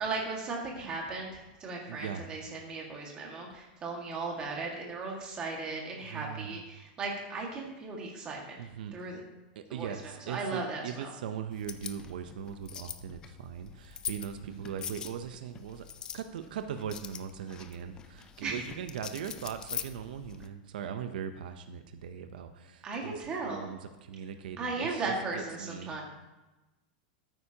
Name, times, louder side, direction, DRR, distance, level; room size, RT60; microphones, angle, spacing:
voice 1, 0.0-8.6 8.9-9.2 9.7-11.1 14.4-14.7 18.4-18.6 22.8-23.8 24.6-26.0, right 3 dB, 20° right, -1 dB, 1.8 m, -37 dB
voice 2, 1.9-2.2 6.1-6.6 8.6-8.9 9.6-15.8 16.1-25.1 25.6-25.9, right 8 dB, 80° right, 8 dB, 0.7 m, -40 dB
sound 1, 11.5-20.5, left 8 dB, 15° left, 0.4 m, -43 dB
13.0 x 9.2 x 2.9 m, 1.1 s
supercardioid pair, 175°, 5 cm